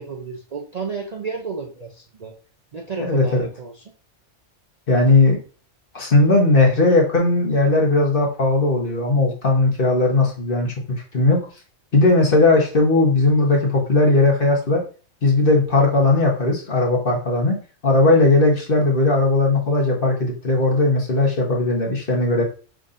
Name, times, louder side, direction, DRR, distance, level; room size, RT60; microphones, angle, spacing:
voice 1, 0.0-2.3 2.7-3.8, right 5 dB, 45° right, -1 dB, 0.6 m, -32 dB
voice 2, 3.0-3.5 4.9-5.4 5.9-10.7 11.1-11.4 11.9-14.8 15.2-17.6 17.8-22.4, left 2 dB, 50° left, -1 dB, 1.4 m, -17 dB
5.4 x 3.7 x 2.5 m, 0.37 s
omnidirectional pair, 1.3 m